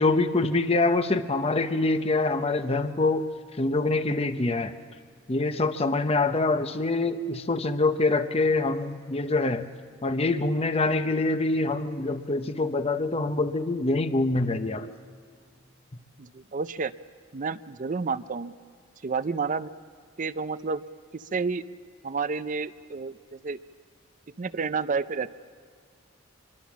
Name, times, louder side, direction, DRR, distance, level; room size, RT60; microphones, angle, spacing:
voice 1, 0.0-3.3 3.6-4.7 5.3-9.7 10.0-14.9, left 2 dB, 30° left, 9 dB, 0.8 m, -25 dB
voice 2, 16.2-16.9 17.3-18.5 19.0-19.7 20.2-20.8 21.1-21.6 22.0-23.6 24.4-25.3, right 4 dB, 40° right, 13 dB, 0.5 m, -30 dB
25.0 x 23.0 x 7.3 m, 2.1 s
head